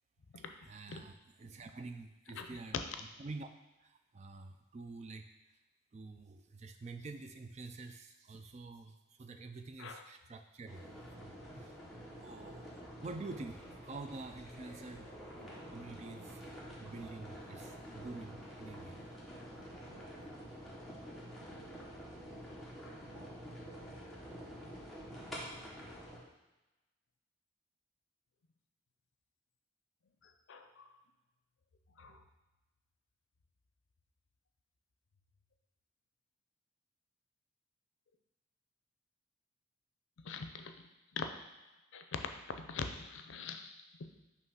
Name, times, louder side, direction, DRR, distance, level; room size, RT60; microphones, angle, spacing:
voice 1, 0.4-3.5 3.8-5.3 5.9-10.9 11.2-11.8 12.1-12.6 13.0-15.1 15.7-16.4 16.8-19.0, right 3 dB, 35° right, 7 dB, 0.3 m, -48 dB
sound 1, 10.7-26.2, equal, ahead, 1.1 m, -48 dB
voice 2, 30.5-30.9 32.0-32.2 40.2-40.7 41.2-41.3 41.9-43.7, left 5 dB, 75° left, 7 dB, 0.5 m, -42 dB
5.7 x 3.1 x 5.5 m, 1.0 s
head